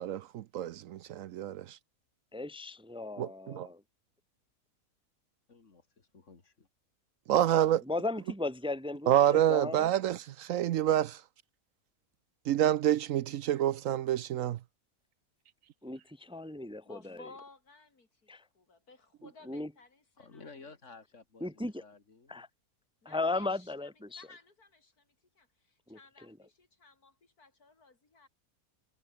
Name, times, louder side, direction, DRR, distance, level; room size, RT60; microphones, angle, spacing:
voice 1, 0.0-1.8 3.2-3.7 7.3-7.8 9.1-11.2 12.5-14.6, right 11 dB, 70° right, 0.9 m, -28 dB
voice 2, 2.3-3.8 7.9-9.9 15.8-17.2 18.3-18.4 19.5-19.7 21.4-21.8 22.3-22.5 23.0-24.2 25.9-26.0 26.3-26.4, left 2 dB, 5° right, 1.2 m, -36 dB
voice 3, 5.5-6.7 20.2-22.5, left 4 dB, 55° left, 2.8 m, -54 dB
voice 4, 16.8-20.6 23.0-28.3, left 3 dB, 85° left, 4.2 m, -57 dB
omnidirectional pair, 1.6 m